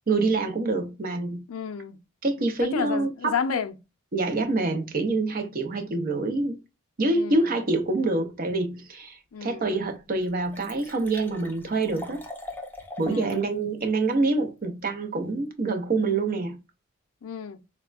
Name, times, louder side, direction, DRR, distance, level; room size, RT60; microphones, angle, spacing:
voice 1, 0.1-1.4 2.2-3.4 4.1-6.6 7.0-12.2 13.0-16.6, right 3 dB, 45° right, 0.5 m, -26 dB
voice 2, 1.5-2.0 2.6-3.7 7.1-7.5 9.3-9.7 13.1-13.4 17.2-17.6, left 6 dB, 80° left, 0.4 m, -31 dB
Liquid, 9.4-9.5 9.9-10.0 10.2-13.5 13.8-13.9, left 2 dB, 10° left, 0.4 m, -42 dB
3.4 x 2.2 x 2.3 m
head